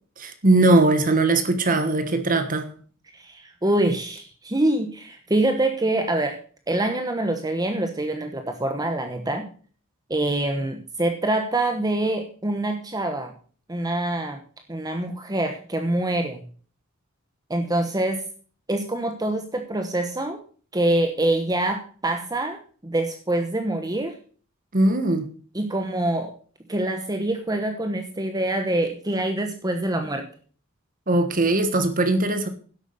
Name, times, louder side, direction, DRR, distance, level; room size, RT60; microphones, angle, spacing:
voice 1, 0.2-2.7 24.7-25.2 31.1-32.5, right 2 dB, 40° right, 1.3 m, -20 dB
voice 2, 3.1-6.4 6.7-9.5 10.1-13.3 13.7-14.4 14.7-16.4 17.5-18.2 18.7-20.4 20.7-24.2 25.5-26.3 26.7-30.3, right 1 dB, 20° right, 1.1 m, -25 dB
11.0 x 8.3 x 6.6 m
head